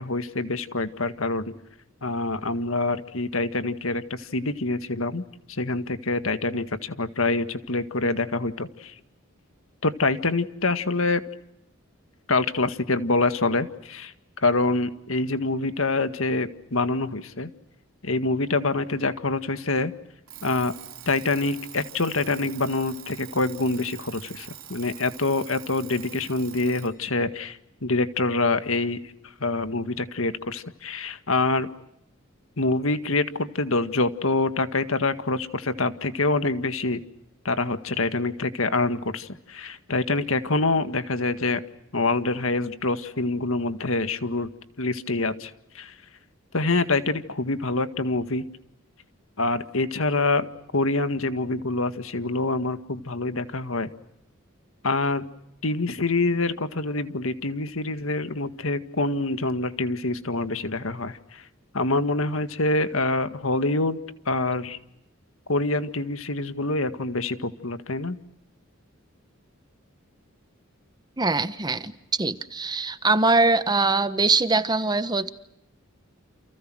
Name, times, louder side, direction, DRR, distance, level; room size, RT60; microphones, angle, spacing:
voice 1, 0.0-1.5 2.0-8.9 9.8-11.2 12.3-14.1 14.4-17.5 18.0-19.9 20.4-20.7 21.1-29.0 29.4-31.7 32.6-37.0 37.5-41.6 41.9-44.5 44.8-45.9 46.5-48.4 49.4-53.9 54.8-55.2 55.6-61.4 61.7-64.0 64.3-64.8 65.5-68.2, left 2 dB, 75° left, 1.9 m, -26 dB
Alarm, 20.3-27.0, right 12 dB, 80° right, 3.4 m, -44 dB
voice 2, 71.2-75.3, right 3 dB, 20° right, 1.2 m, -22 dB
30.0 x 28.5 x 6.3 m
head